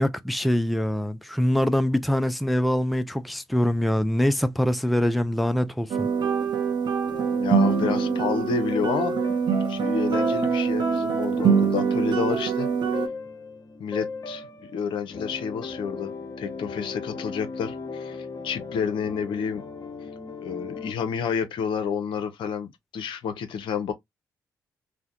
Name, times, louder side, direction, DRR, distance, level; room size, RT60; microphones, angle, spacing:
voice 1, 0.0-6.1, equal, ahead, 0.4 m, -24 dB
sound 1, 5.9-13.1, right 6 dB, 55° right, 0.8 m, -24 dB
sound 2, 6.6-20.9, left 4 dB, 40° left, 1.0 m, -36 dB
voice 2, 7.4-9.2 9.7-12.7 13.8-14.5 14.7-16.1 16.4-19.6 20.4-23.9, left 7 dB, 65° left, 0.6 m, -29 dB
3.4 x 2.1 x 2.6 m
hypercardioid pair, 40°, 9 cm